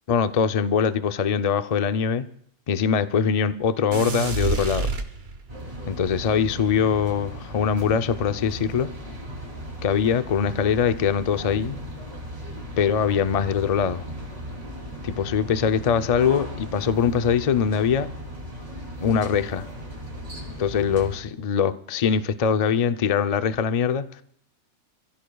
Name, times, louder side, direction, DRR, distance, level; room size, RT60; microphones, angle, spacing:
voice 1, 0.1-2.3 2.7-4.9 5.9-8.9 9.8-11.8 12.8-14.1 15.0-18.1 19.0-19.7 20.6-24.2, left 7 dB, 60° left, 0.4 m, -22 dB
sound 1, 3.9-5.7, right 4 dB, 45° right, 1.3 m, -27 dB
sound 2, 5.5-21.2, equal, 25° right, 2.9 m, -37 dB
28.0 x 15.5 x 2.3 m
omnidirectional pair, 1.5 m